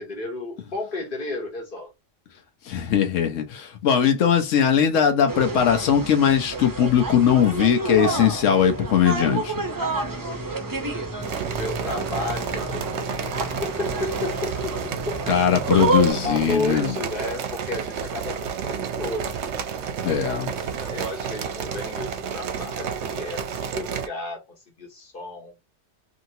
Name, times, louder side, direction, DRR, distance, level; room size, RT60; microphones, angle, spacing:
voice 1, 0.0-1.9 11.3-15.0 16.1-19.4 20.5-24.4 24.8-25.5, left 2 dB, 45° left, 1.2 m, -33 dB
voice 2, 2.7-9.5 15.3-16.9 20.0-20.5, left 8 dB, 70° left, 1.1 m, -20 dB
sound 1, 5.3-16.1, right 2 dB, 30° right, 0.4 m, -29 dB
sound 2, 11.2-24.1, right 7 dB, 65° right, 0.8 m, -31 dB
2.8 x 2.8 x 2.7 m
omnidirectional pair, 1.4 m